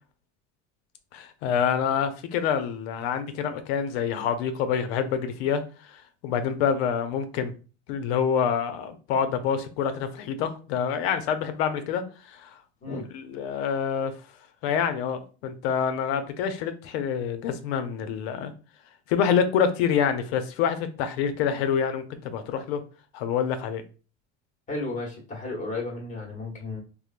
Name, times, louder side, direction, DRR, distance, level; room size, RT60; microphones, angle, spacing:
voice 1, 1.1-7.5 7.9-12.6 12.9-14.2 14.6-18.5 19.1-22.8 23.1-23.8, left 7 dB, 75° left, 9 dB, 0.6 m, -27 dB
voice 2, 24.7-26.8, left 2 dB, 25° left, -1 dB, 1.0 m, -33 dB
3.0 x 2.1 x 2.4 m, 0.35 s
supercardioid pair, 120°, 32 cm